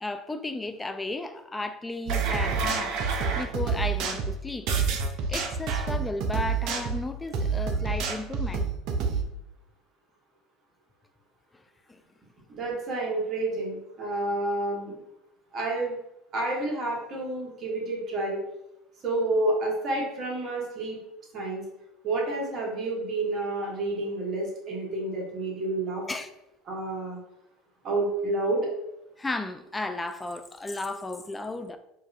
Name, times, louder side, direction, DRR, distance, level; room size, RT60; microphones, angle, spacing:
voice 1, 0.0-3.0 3.4-4.7 5.3-8.7 11.5-11.6 11.9-12.0 26.1-26.3 29.2-31.8, left 2 dB, 15° left, 0.4 m, -34 dB
sound 1, 2.1-9.2, right 5 dB, 60° right, 0.5 m, -28 dB
voice 2, 12.5-14.9 15.5-16.0 16.3-18.4 19.0-21.0 21.3-21.6 22.0-26.0 26.7-27.2 27.8-28.7, right 2 dB, 45° right, 1.3 m, -29 dB
4.5 x 2.5 x 2.4 m
hypercardioid pair, 75°, 0 cm